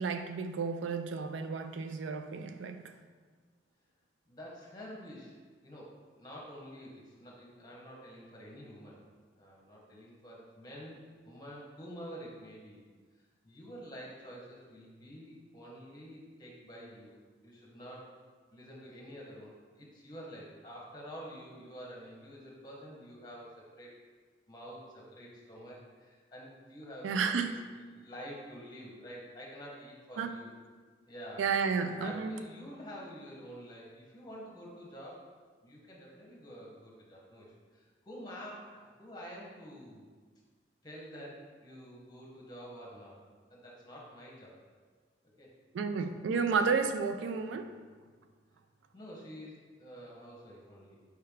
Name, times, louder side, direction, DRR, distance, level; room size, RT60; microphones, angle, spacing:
voice 1, 0.0-2.9 27.0-27.5 30.2-30.3 31.4-32.3 45.7-47.7, right 5 dB, 85° right, 0.3 m, -32 dB
voice 2, 4.3-5.3 5.6-9.0 9.3-12.8 13.4-17.2 17.4-18.1 18.5-23.9 24.5-30.5 31.1-31.4 31.8-35.3 35.6-40.1 40.8-43.2 43.5-44.6 45.4-45.5 45.9-46.0 46.5-46.7 48.9-51.0, equal, 20° left, 0.9 m, -48 dB
4.7 x 3.3 x 3.5 m
head